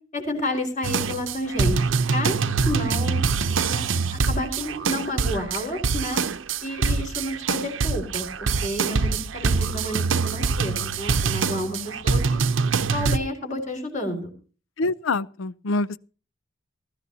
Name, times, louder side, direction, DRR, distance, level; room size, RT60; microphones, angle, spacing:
voice 1, 0.1-1.8 2.1-2.4 2.6-3.2 3.7-6.2 6.6-12.4 12.9-14.3, left 1 dB, 40° left, 4.9 m, -30 dB
sound 1, 0.8-13.2, right 4 dB, 80° right, 0.7 m, -24 dB
voice 2, 14.8-16.0, left 3 dB, 85° left, 0.6 m, -25 dB
20.0 x 14.5 x 2.8 m
head